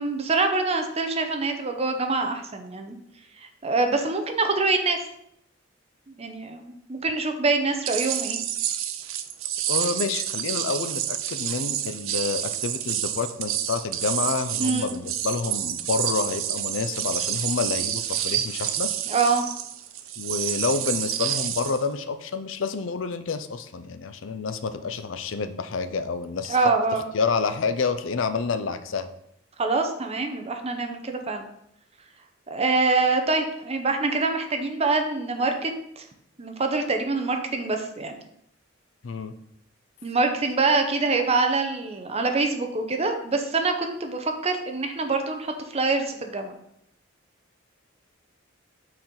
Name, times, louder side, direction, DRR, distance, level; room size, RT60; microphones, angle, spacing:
voice 1, 0.0-3.0 3.4-5.0 6.1-8.4 14.6-14.9 19.1-19.4 26.5-27.1 29.6-31.5 32.5-36.0 36.4-38.2 40.0-46.6, right 3 dB, 30° right, 5 dB, 0.7 m, -25 dB
sound 1, 7.9-21.8, right 11 dB, 85° right, 0.5 m, -29 dB
voice 2, 9.7-18.9 20.2-26.7 27.1-29.1 39.0-39.3, left 4 dB, 70° left, 10 dB, 0.5 m, -28 dB
6.4 x 4.4 x 3.9 m, 0.74 s
head